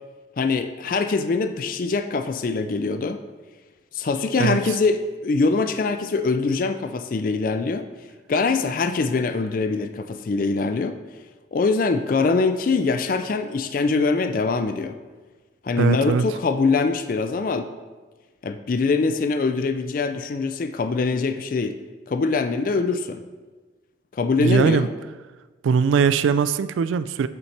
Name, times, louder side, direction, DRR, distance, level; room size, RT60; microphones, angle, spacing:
voice 1, 0.4-3.2 3.9-7.9 8.3-11.0 11.5-15.0 15.6-17.7 18.4-21.8 22.1-23.2 24.1-24.9, left 4 dB, 45° left, 8 dB, 0.4 m, -23 dB
voice 2, 15.8-16.3 24.4-24.9 25.6-27.3, right 6 dB, 85° right, 13 dB, 0.3 m, -20 dB
8.3 x 7.1 x 3.3 m, 1.3 s
head